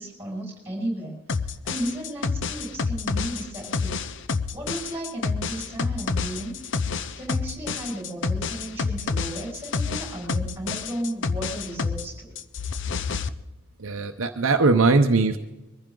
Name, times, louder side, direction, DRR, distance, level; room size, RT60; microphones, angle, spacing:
voice 1, 0.0-4.0 4.5-6.5 6.8-12.3, right 1 dB, 10° right, -1 dB, 6.1 m, -34 dB
sound 1, 1.3-12.1 12.4-13.3, left 4 dB, 55° left, 0.6 m, -28 dB
voice 2, 13.8-15.4, right 3 dB, 60° right, 5 dB, 0.8 m, -20 dB
22.5 x 15.0 x 3.8 m, 1.1 s
head